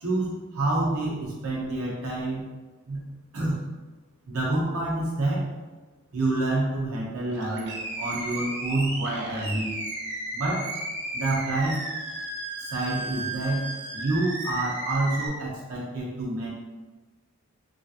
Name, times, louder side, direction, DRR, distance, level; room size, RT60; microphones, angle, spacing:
voice 1, 0.0-2.5 2.9-3.0 3.3-3.7 4.3-5.5 6.1-9.8 10.3-10.7 11.1-11.8 12.6-16.5, right 2 dB, 85° right, -4 dB, 0.9 m, -28 dB
Animal, 7.3-15.3, right 2 dB, 55° right, 0.6 m, -34 dB
3.2 x 2.5 x 2.7 m, 1.3 s
head